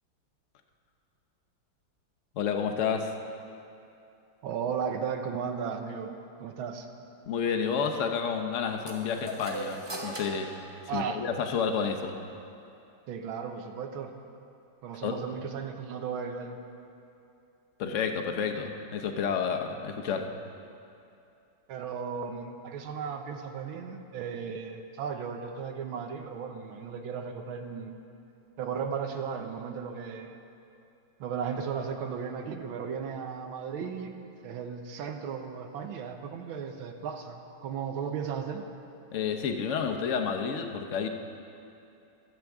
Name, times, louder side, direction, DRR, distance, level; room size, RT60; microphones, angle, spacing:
voice 1, 2.3-3.1 7.3-10.5 10.9-12.2 15.0-15.2 17.8-20.3 39.1-41.1, left 6 dB, 60° left, 5 dB, 0.8 m, -30 dB
voice 2, 4.4-6.1 6.4-6.9 10.9-11.2 13.1-14.1 14.8-16.6 21.7-27.9 28.6-30.4 31.2-34.1 34.4-38.7, right 6 dB, 90° right, 5 dB, 1.6 m, -35 dB
sound 1, 8.9-11.5, right 1 dB, 15° right, 1.0 m, -40 dB
23.0 x 7.7 x 3.5 m, 2.7 s
omnidirectional pair, 2.2 m